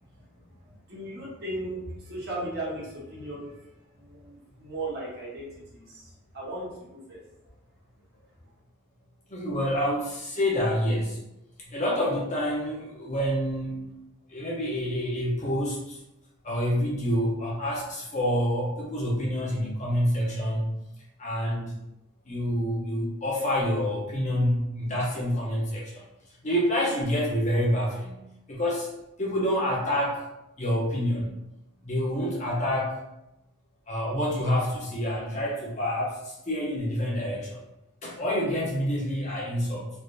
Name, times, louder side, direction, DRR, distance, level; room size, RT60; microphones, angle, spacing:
voice 1, 0.4-3.7 4.0-7.2, right 1 dB, 50° right, -6 dB, 1.1 m, -37 dB
voice 2, 9.3-11.2 11.6-13.8 14.3-16.0 16.4-20.7 21.2-21.8 22.3-26.0 26.4-28.9 29.2-30.3 30.6-31.3 31.8-33.0 33.9-37.6 38.0-39.9, equal, 35° left, -4 dB, 0.7 m, -27 dB
3.3 x 2.7 x 2.6 m, 0.89 s
head